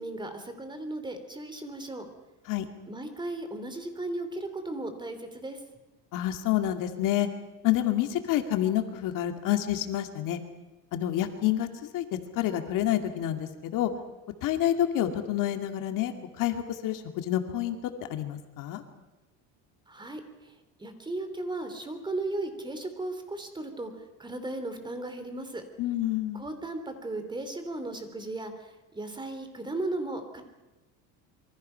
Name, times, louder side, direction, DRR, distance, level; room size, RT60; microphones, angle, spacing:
voice 1, 0.0-2.0 2.9-5.6 19.9-20.5 20.8-23.9 24.2-25.6 26.3-30.4, right 2 dB, 15° right, 8 dB, 3.1 m, -36 dB
voice 2, 6.1-7.3 7.6-10.4 10.9-11.7 11.9-12.0 12.4-13.9 14.4-17.8 18.1-18.8 25.8-26.4, left 12 dB, 65° left, 6 dB, 2.4 m, -28 dB
27.0 x 24.0 x 5.7 m, 1.1 s
cardioid pair, 135°, 35 cm